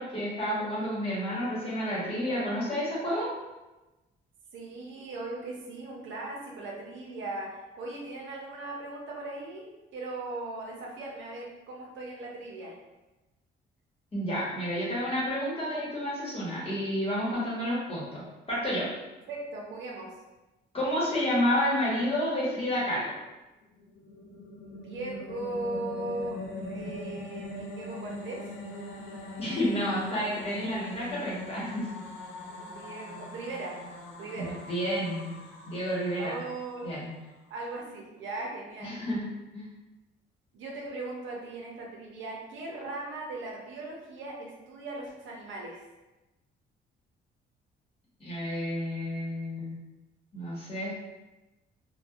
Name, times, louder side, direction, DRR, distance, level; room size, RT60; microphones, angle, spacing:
voice 1, 0.0-3.3 14.1-18.9 20.7-23.2 29.4-31.9 34.4-35.3 35.7-36.4 36.8-37.1 38.8-39.7 48.2-49.7 50.3-50.9, equal, 30° left, -7 dB, 1.2 m, -30 dB
voice 2, 4.5-9.7 9.9-12.8 19.3-20.1 24.7-26.4 26.7-28.5 32.5-33.8 34.2-34.6 36.2-36.9 37.5-38.9 40.5-45.9, right 2 dB, 75° right, -2 dB, 0.6 m, -38 dB
sound 1, 23.7-37.1, left 1 dB, 85° left, 0.5 m, -42 dB
2.5 x 2.2 x 2.3 m, 1.1 s
cardioid pair, 90°, 20 cm